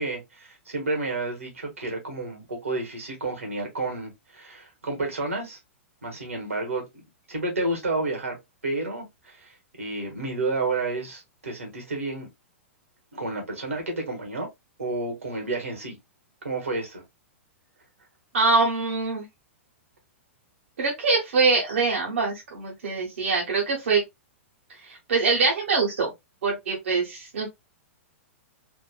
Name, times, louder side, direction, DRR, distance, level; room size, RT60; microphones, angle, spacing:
voice 1, 0.0-5.6 6.0-6.8 7.3-8.4 8.6-12.3 13.1-14.5 14.8-16.0 16.4-17.0, right 2 dB, 85° right, 1.5 m, -30 dB
voice 2, 18.3-19.2 20.8-24.0 24.8-26.1 26.4-27.5, right 4 dB, 70° right, 1.1 m, -24 dB
3.6 x 2.5 x 2.3 m
hypercardioid pair, 110°, 7 cm